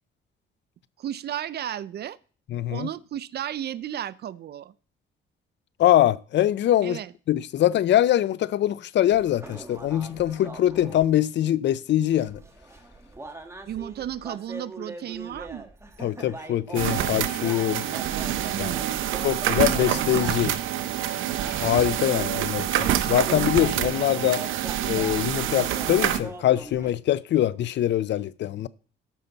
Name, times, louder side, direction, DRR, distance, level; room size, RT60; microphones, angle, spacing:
voice 1, 1.0-2.2 2.7-4.7 6.8-7.1 13.7-15.7 18.5-19.1, right 11 dB, 55° right, 0.5 m, -34 dB
voice 2, 2.5-2.9 5.8-7.0 7.3-12.4 16.0-17.8 18.6-18.7 19.2-20.6 21.4-24.4 24.8-28.7, left 12 dB, 65° left, 0.5 m, -23 dB
sound 1, 9.1-11.0 12.1-26.9, right 2 dB, 15° right, 1.3 m, -42 dB
sound 2, 16.7-26.2, right 11 dB, 85° right, 0.8 m, -26 dB
13.0 x 5.8 x 4.0 m
cardioid pair, 90°, 20 cm